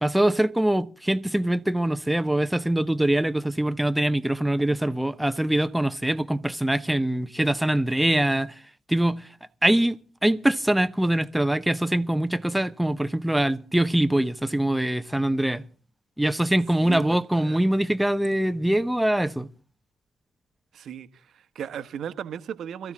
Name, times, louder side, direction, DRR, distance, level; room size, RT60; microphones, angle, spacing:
voice 1, 0.0-8.6 8.9-9.3 9.6-15.6 16.2-19.5, right 1 dB, 5° right, 0.9 m, -23 dB
voice 2, 16.8-17.6 20.7-22.9, right 8 dB, 55° right, 1.3 m, -36 dB
21.5 x 14.0 x 3.6 m
figure-of-eight pair, 45°, 0 cm